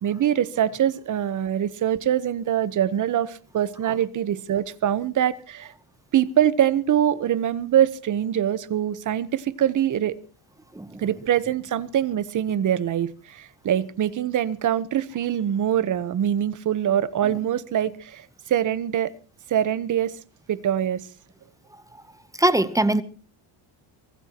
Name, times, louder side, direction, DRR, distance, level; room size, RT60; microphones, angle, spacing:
voice 1, 0.0-5.7 6.1-10.2 11.0-19.1 19.5-20.2 20.5-21.1, right 10 dB, 35° right, 16 dB, 1.1 m, -24 dB
voice 2, 10.7-11.0 21.7-22.0 22.3-23.0, right 1 dB, 5° right, 13 dB, 0.8 m, -23 dB
24.5 x 17.0 x 3.0 m, 0.37 s
cardioid pair, 150°, 49 cm